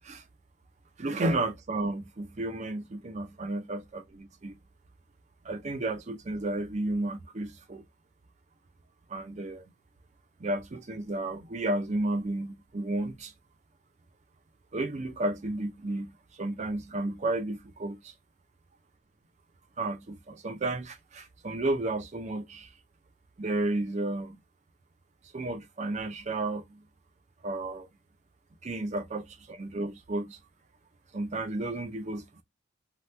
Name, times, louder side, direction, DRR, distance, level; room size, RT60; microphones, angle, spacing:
voice 1, 1.0-4.5 5.5-7.8 9.1-9.6 10.4-13.3 14.7-16.1 16.4-18.0 19.8-22.7 23.4-24.4 25.3-26.8 27.4-27.9 28.6-30.4 31.1-32.2, right 2 dB, 40° right, 0.5 m, -32 dB
2.9 x 2.3 x 3.2 m
head